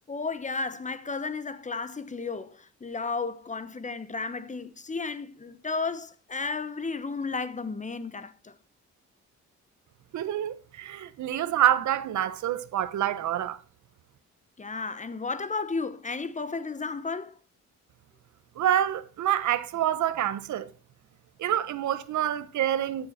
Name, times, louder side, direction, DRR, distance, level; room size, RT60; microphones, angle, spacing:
voice 1, 0.1-8.5 14.6-17.4, left 4 dB, 25° left, 1.1 m, -33 dB
voice 2, 10.1-13.6 18.6-20.7 21.4-23.1, right 11 dB, 70° right, 1.1 m, -27 dB
13.0 x 7.6 x 4.3 m
cardioid pair, 90°, 30 cm